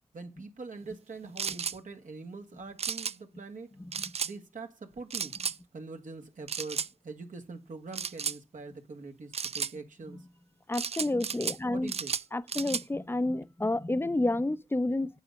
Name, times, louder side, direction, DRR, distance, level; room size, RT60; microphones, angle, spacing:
voice 1, 0.1-3.7 4.2-5.3 5.7-10.2 11.7-12.1, right 3 dB, 65° right, 1.6 m, -43 dB
sound 1, 1.4-1.8 2.8-3.1 3.9-4.3 5.1-5.6 6.5-6.9 7.9-8.4 9.3-9.7 10.7-11.6 11.9-12.8, right 6 dB, 45° right, 0.4 m, -33 dB
voice 2, 10.7-11.9 12.3-15.1, left 2 dB, 15° left, 0.7 m, -30 dB
9.0 x 4.0 x 6.4 m
cardioid pair, 45°, 14 cm